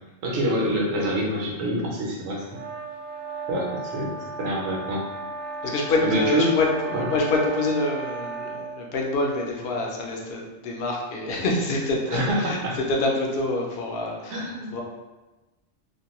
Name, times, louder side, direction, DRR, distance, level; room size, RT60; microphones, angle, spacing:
voice 1, 0.2-2.6 3.5-5.0 6.0-6.6 6.9-7.1 12.1-12.8 14.3-14.7, equal, 65° right, -3 dB, 0.9 m, -26 dB
sound 1, 2.5-8.8, right 4 dB, 85° right, 1.0 m, -34 dB
voice 2, 5.6-14.8, left 2 dB, 60° left, -1 dB, 0.7 m, -26 dB
2.5 x 2.2 x 2.9 m, 1.1 s
omnidirectional pair, 1.3 m